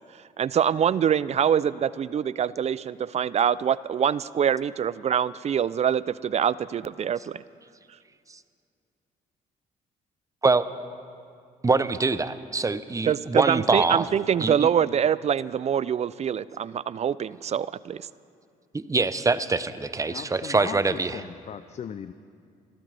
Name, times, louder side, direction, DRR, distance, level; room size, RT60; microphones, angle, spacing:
voice 1, 0.4-7.4 13.1-18.1, right 8 dB, 40° right, 19 dB, 0.4 m, -25 dB
voice 2, 11.6-14.1 14.4-14.7 18.7-21.2, right 3 dB, 20° right, 13 dB, 0.8 m, -24 dB
voice 3, 20.1-22.1, left 8 dB, 45° left, 12 dB, 0.5 m, -38 dB
27.5 x 12.5 x 3.4 m, 2.3 s
supercardioid pair, 70°, 16 cm